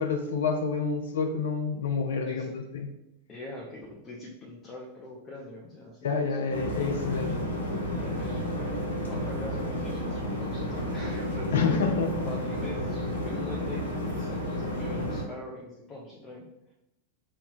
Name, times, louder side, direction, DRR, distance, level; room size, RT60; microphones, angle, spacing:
voice 1, 0.0-2.9 6.0-7.4 11.5-12.1, left 5 dB, 60° left, 4 dB, 0.6 m, -28 dB
voice 2, 2.2-2.6 3.3-6.8 7.1-7.3 8.0-16.7, left 2 dB, 25° left, -3 dB, 0.8 m, -43 dB
sound 1, 6.5-15.2, equal, 85° left, 0.8 m, -31 dB
5.3 x 2.2 x 3.9 m, 0.87 s
figure-of-eight pair, 90°, 0 cm